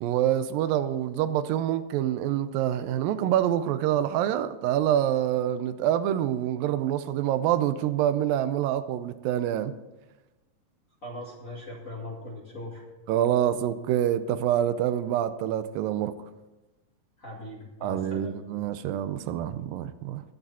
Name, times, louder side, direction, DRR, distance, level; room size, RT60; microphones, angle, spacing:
voice 1, 0.0-9.7 13.1-16.2 17.8-20.2, right 11 dB, 80° right, 2.3 m, -26 dB
voice 2, 11.0-12.8 17.2-18.4, left 1 dB, 30° left, 1.7 m, -40 dB
20.0 x 6.8 x 4.2 m
omnidirectional pair, 4.1 m